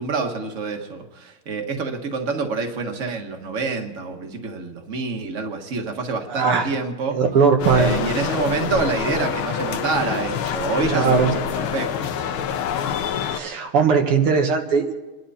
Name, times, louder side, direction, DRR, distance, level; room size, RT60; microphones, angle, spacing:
voice 1, 0.0-7.2 7.8-12.1, right 4 dB, 40° right, 4 dB, 1.7 m, -27 dB
voice 2, 6.3-6.7 7.1-8.1 10.9-11.3 13.3-14.9, right 5 dB, 90° right, 3 dB, 2.5 m, -19 dB
sound 1, 7.6-13.4, left 8 dB, 75° left, 1.6 m, -26 dB
29.0 x 11.5 x 4.2 m, 1.2 s
omnidirectional pair, 2.4 m